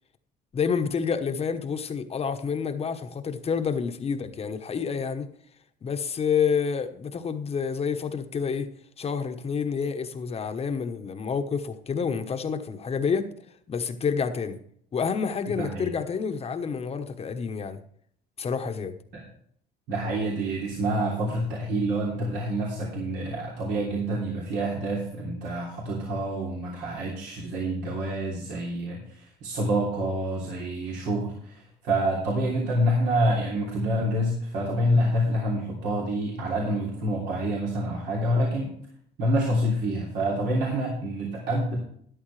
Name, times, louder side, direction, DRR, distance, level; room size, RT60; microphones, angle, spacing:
voice 1, 0.5-5.3 5.8-8.7 9.0-13.3 13.7-14.6 14.9-17.8 18.4-18.9, left 6 dB, 35° left, 1.1 m, -28 dB
voice 2, 15.5-15.9 19.1-19.2 19.9-38.7 39.2-41.8, right 1 dB, 80° right, 3.1 m, -27 dB
13.0 x 11.0 x 3.3 m
cardioid pair, 110°, 17 cm